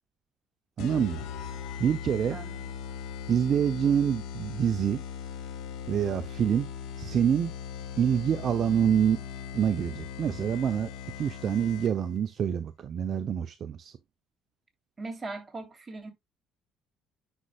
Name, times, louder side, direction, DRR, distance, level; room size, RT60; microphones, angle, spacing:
sound 1, 0.8-12.2, left 8 dB, 75° left, 1.5 m, -39 dB
voice 1, 0.8-1.3 1.8-2.4 3.3-5.0 5.9-6.7 7.0-7.5 8.0-9.2 9.5-10.9 11.2-13.9, right 8 dB, 55° right, 0.7 m, -26 dB
voice 2, 2.3-2.7 15.0-16.1, right 3 dB, 25° right, 3.2 m, -39 dB
9.9 x 5.5 x 2.4 m
supercardioid pair, 75°, 0 cm